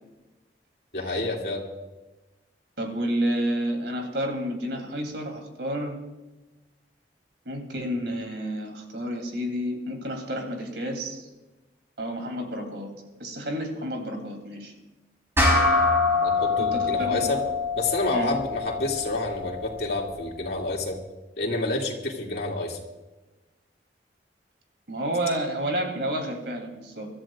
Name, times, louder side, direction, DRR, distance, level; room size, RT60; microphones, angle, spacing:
voice 1, 0.9-1.6 16.2-17.4 17.8-21.0 21.4-22.8, left 2 dB, 60° left, -1 dB, 2.7 m, -28 dB
voice 2, 2.8-6.0 7.4-11.3 12.0-12.9 13.2-14.7 16.6-17.3 18.1-18.3 24.9-27.1, right 1 dB, 75° right, 3 dB, 3.2 m, -30 dB
sound 1, 15.4-20.1, left 3 dB, 15° right, 4.6 m, -25 dB
25.0 x 13.5 x 2.5 m, 1.1 s
head